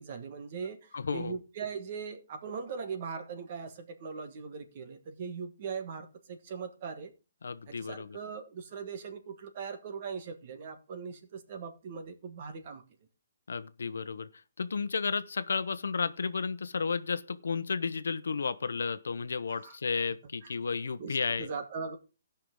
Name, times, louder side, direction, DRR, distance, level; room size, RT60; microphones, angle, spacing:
voice 1, 0.0-7.1 7.7-12.8 19.5-19.8 20.4-20.5 21.0-22.0, right 5 dB, 35° right, 1.3 m, -40 dB
voice 2, 0.9-1.4 7.4-8.2 13.5-14.3 14.6-21.5, left 5 dB, 90° left, 0.8 m, -33 dB
17.0 x 5.8 x 3.7 m
hypercardioid pair, 175°, 0 cm